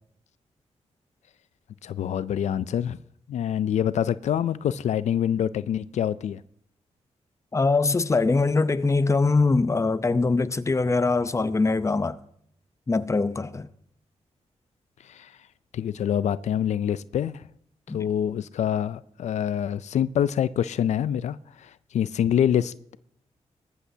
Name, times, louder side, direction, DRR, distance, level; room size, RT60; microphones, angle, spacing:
voice 1, 1.8-3.0 3.3-6.4 15.0-15.4 15.7-17.4 17.9-23.0, left 9 dB, 80° left, 0.4 m, -26 dB
voice 2, 7.5-12.2 12.9-13.7 17.9-18.0, left 3 dB, 25° left, 0.7 m, -22 dB
18.5 x 14.0 x 2.8 m
cardioid pair, 80°, 12 cm